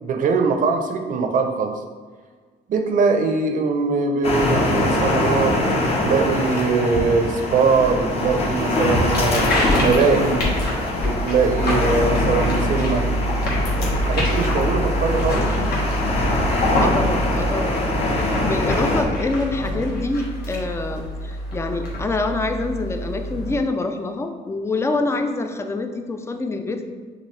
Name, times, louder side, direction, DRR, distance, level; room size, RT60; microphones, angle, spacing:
voice 1, 0.0-1.8 2.7-9.5 9.8-10.4 11.0-13.1 13.7-15.4, right 4 dB, 55° right, 4 dB, 0.6 m, -21 dB
sound 1, 4.2-19.0, left 2 dB, 35° left, 0.8 m, -23 dB
sound 2, 8.9-23.6, equal, 65° left, 1.3 m, -25 dB
voice 2, 16.8-17.9 18.4-26.8, left 3 dB, 15° left, 6 dB, 0.4 m, -26 dB
5.9 x 2.6 x 3.2 m, 1.5 s
cardioid pair, 110°, 17 cm